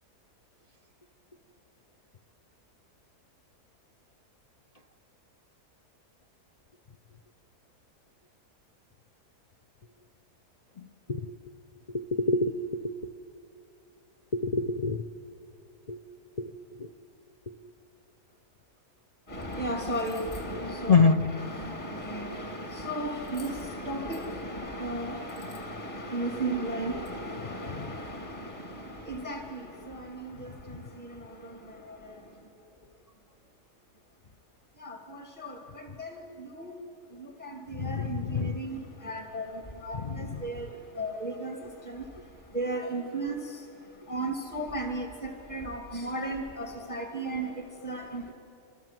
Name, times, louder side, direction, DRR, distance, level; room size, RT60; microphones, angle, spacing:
voice 1, 11.9-12.9 14.3-15.1 15.9-16.0 16.4-16.5 16.8-16.9 20.9-21.2 27.7-27.9 37.8-38.5 39.9-40.3, left 4 dB, 55° left, 5 dB, 0.4 m, -26 dB
voice 2, 19.3-28.4 29.1-29.6 34.8-34.9 35.4-35.5 36.0-36.1 36.6-36.7 37.4-37.5 37.8-38.8 39.0-39.5 39.8-40.6 41.0-41.5 42.5-43.4 44.1-45.1 45.5-47.5 47.8-48.3, right 1 dB, 25° left, 3 dB, 2.5 m, -34 dB
28.0 x 27.5 x 7.7 m, 2.7 s
omnidirectional pair, 1.7 m